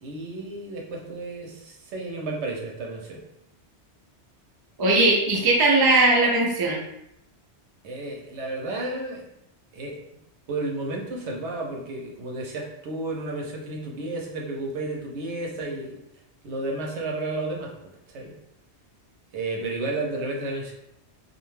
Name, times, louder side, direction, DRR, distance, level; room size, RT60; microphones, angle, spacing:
voice 1, 0.0-3.2 7.8-9.2 9.7-10.0 10.5-16.0 16.4-17.7 18.1-18.3 19.3-20.7, right 2 dB, 80° right, -1 dB, 0.9 m, -32 dB
voice 2, 4.8-6.8, right 2 dB, 40° right, -2 dB, 0.3 m, -19 dB
2.4 x 2.2 x 3.1 m, 0.82 s
omnidirectional pair, 1.2 m